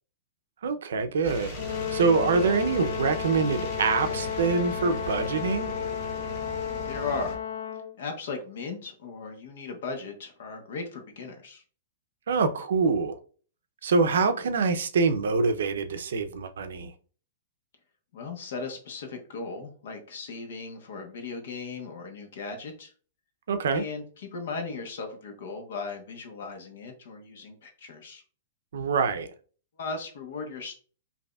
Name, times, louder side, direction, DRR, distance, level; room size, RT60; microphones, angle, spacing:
voice 1, 0.6-1.5 1.9-5.7 12.3-13.2 13.8-16.9 23.5-23.8 28.7-29.3, right 4 dB, 70° right, 9 dB, 0.5 m, -25 dB
sound 1, 1.2-7.4, right 1 dB, 25° left, 0.8 m, -38 dB
Brass instrument, 1.6-8.0, left 9 dB, 85° left, 0.4 m, -33 dB
voice 2, 6.8-7.4 8.0-11.6 18.1-22.9 23.7-28.2 29.8-30.7, left 4 dB, 55° left, 4 dB, 1.0 m, -37 dB
5.0 x 2.7 x 2.3 m, 0.40 s
hypercardioid pair, 180°, 0 cm